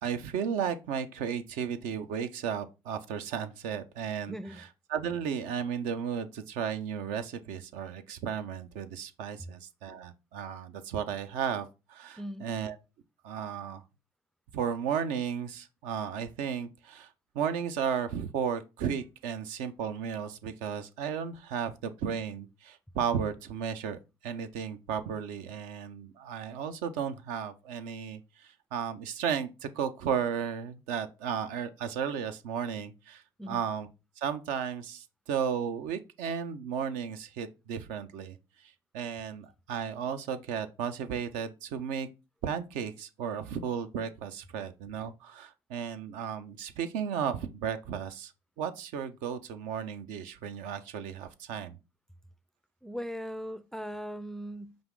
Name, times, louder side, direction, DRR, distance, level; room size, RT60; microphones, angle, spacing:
voice 1, 0.0-4.3 4.9-12.8 13.2-13.8 14.5-17.1 17.3-33.9 34.2-38.4 38.9-42.1 42.4-48.3 48.6-51.8, right 7 dB, 75° right, 0.5 m, -34 dB
voice 2, 4.3-4.6 12.2-12.5 33.4-33.6 52.8-54.8, equal, 5° left, 0.3 m, -39 dB
5.1 x 2.4 x 3.6 m
hypercardioid pair, 55°, 13 cm